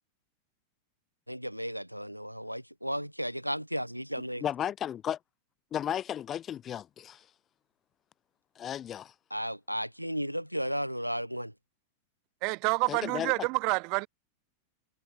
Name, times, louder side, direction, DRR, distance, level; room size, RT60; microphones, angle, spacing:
voice 1, 1.3-4.4 9.3-11.5, equal, 90° right, 0.4 m, -34 dB
voice 2, 4.4-5.2 5.7-7.2 8.6-9.1 12.9-13.3, left 10 dB, 25° left, 0.5 m, -34 dB
voice 3, 12.4-14.1, right 30 dB, 45° right, 0.6 m, -28 dB
figure-of-eight pair, 90°, 0 cm